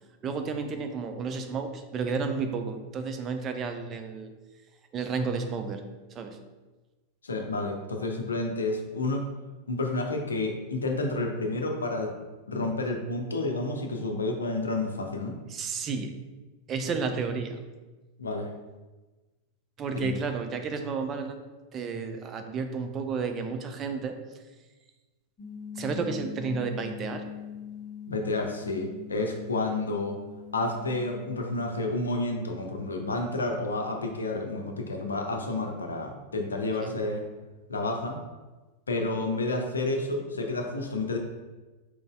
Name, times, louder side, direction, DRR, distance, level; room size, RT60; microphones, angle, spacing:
voice 1, 0.2-4.3 4.9-5.8 6.1-6.4 15.5-16.1 16.7-17.6 19.8-21.4 21.7-24.2 25.8-27.3 36.8-36.9, right 5 dB, 30° right, 6 dB, 0.4 m, -31 dB
voice 2, 7.2-9.2 9.7-12.1 12.5-15.4 18.2-18.5 19.9-20.2 28.1-30.2 30.5-37.2 37.7-38.2 38.9-41.2, left 2 dB, 75° left, 2 dB, 0.6 m, -30 dB
sound 1, 25.4-31.8, left 8 dB, 20° left, 0.8 m, -42 dB
4.5 x 3.9 x 2.3 m, 1.2 s
figure-of-eight pair, 90°, 0 cm